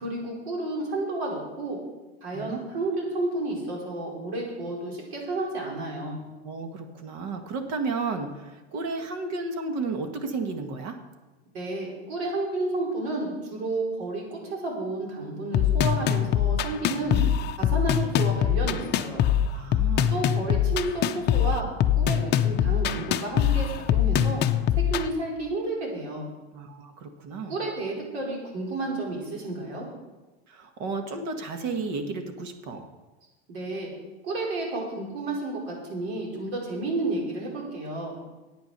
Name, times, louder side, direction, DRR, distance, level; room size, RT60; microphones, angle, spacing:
voice 1, 0.0-1.8 2.2-6.2 11.5-17.2 17.6-19.3 20.1-21.7 22.0-24.4 24.7-26.3 27.5-29.9 33.5-33.9 34.2-38.1, right 2 dB, 80° right, -2 dB, 5.0 m, -31 dB
voice 2, 6.4-11.0 16.9-17.3 19.5-20.2 26.5-27.6 30.5-32.9, right 3 dB, 55° right, 6 dB, 1.7 m, -33 dB
sound 1, 15.5-25.1, left 9 dB, 35° left, 0.6 m, -23 dB
10.5 x 8.8 x 6.7 m, 1.2 s
supercardioid pair, 135°, 31 cm